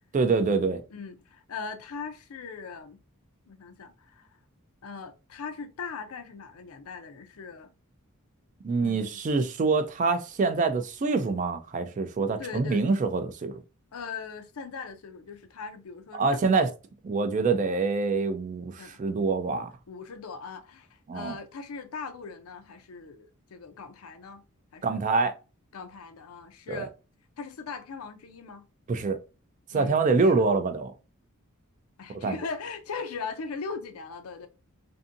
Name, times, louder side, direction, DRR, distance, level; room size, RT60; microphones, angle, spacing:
voice 1, 0.1-0.8 8.6-13.6 16.1-16.7 17.0-19.7 21.1-21.4 24.8-25.3 26.7-26.9 28.9-29.2 29.7-30.9 32.2-32.4, right 4 dB, 35° right, 0.3 m, -25 dB
voice 2, 0.9-3.0 3.5-4.3 4.8-7.7 8.8-9.2 12.4-13.0 13.9-16.4 18.8-19.0 19.9-24.4 24.7-25.0 25.7-26.9 27.4-28.6 29.7-30.4 32.0-34.5, left 5 dB, 75° left, 0.5 m, -40 dB
2.6 x 2.6 x 2.5 m
head